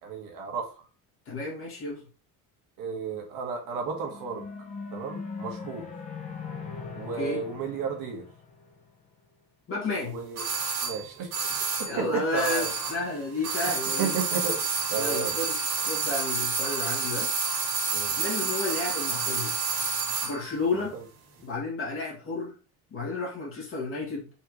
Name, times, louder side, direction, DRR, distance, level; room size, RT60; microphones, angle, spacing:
voice 1, 0.0-0.8 2.8-4.4 4.9-5.9 6.9-8.3 10.0-10.5 10.8-11.3 11.8-12.7 14.0-14.6 14.9-15.3 17.9-18.2 20.7-21.0, right 5 dB, 65° right, 1.4 m, -33 dB
voice 2, 1.3-2.0 7.2-7.4 9.7-10.2 11.9-14.1 14.9-17.3 18.2-19.7 20.2-21.0 21.4-22.5 22.9-24.3, left 3 dB, 35° left, 2.1 m, -32 dB
sound 1, 3.6-9.1, left 5 dB, 20° left, 0.8 m, -40 dB
sound 2, 10.4-13.1 13.4-20.4 20.6-20.7, right 5 dB, 90° right, 1.8 m, -29 dB
4.4 x 3.7 x 3.0 m
cardioid pair, 170°, 35 cm